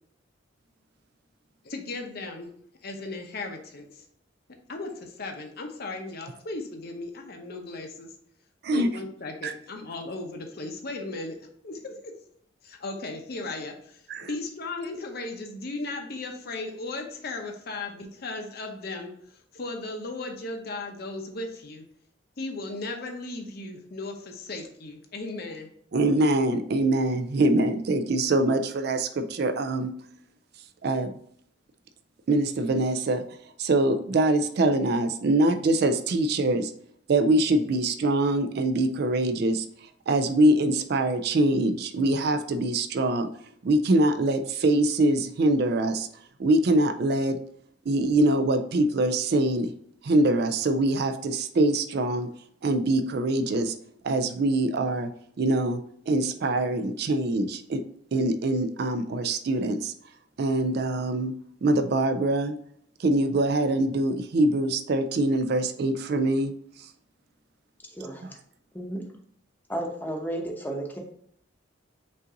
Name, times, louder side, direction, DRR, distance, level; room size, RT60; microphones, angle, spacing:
voice 1, 1.6-2.5 2.8-4.0 4.7-8.1 8.7-11.4 11.6-12.2 12.6-21.8 22.4-25.7, left 2 dB, 55° left, 3 dB, 0.7 m, -36 dB
voice 2, 25.9-29.9 30.8-31.1 32.3-33.2 33.6-36.7 37.1-39.7 40.1-43.3 43.6-46.1 46.4-47.4 47.9-49.7 50.0-52.3 52.6-53.7 54.0-55.1 55.4-55.8 56.1-57.8 58.1-59.9 60.4-61.3 61.6-62.5 63.0-66.5, right 2 dB, 55° right, 9 dB, 0.4 m, -24 dB
voice 3, 67.9-68.2 68.7-69.1 69.7-71.0, right 1 dB, 10° left, 1 dB, 0.8 m, -33 dB
5.5 x 2.6 x 3.8 m, 0.66 s
head